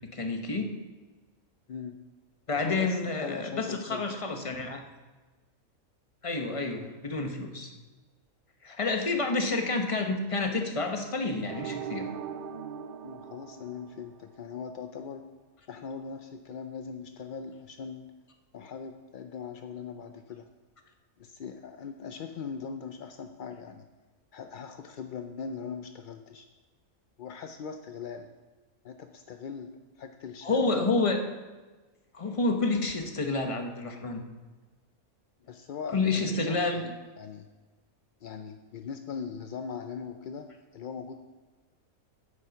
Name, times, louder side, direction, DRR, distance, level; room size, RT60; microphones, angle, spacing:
voice 1, 0.1-0.7 2.5-4.8 6.2-7.7 8.6-12.1 30.4-31.2 32.1-34.2 35.9-36.8, left 3 dB, 25° left, 5 dB, 0.9 m, -29 dB
voice 2, 1.7-2.0 2.6-4.1 13.0-15.3 15.7-18.1 18.5-20.5 21.2-23.9 24.3-26.5 27.2-28.3 28.8-29.7 30.0-30.9 35.5-36.9 37.2-37.5 38.2-41.2, left 6 dB, 65° left, 7 dB, 0.5 m, -40 dB
sound 1, 11.4-14.4, right 7 dB, 60° right, 0.5 m, -39 dB
9.3 x 8.5 x 5.8 m, 1.3 s
omnidirectional pair, 1.5 m